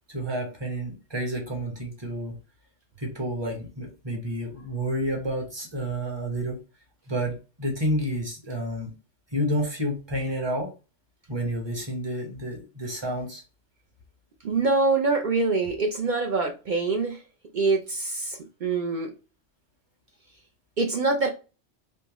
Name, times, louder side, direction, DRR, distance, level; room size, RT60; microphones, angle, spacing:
voice 1, 0.0-2.4 3.0-6.6 7.1-8.9 9.3-10.7 11.3-13.4, equal, 25° right, 1.0 m, -30 dB
voice 2, 14.4-17.2 17.5-19.1 20.8-21.3, right 3 dB, 50° right, 0.6 m, -25 dB
3.6 x 2.7 x 2.9 m
omnidirectional pair, 1.3 m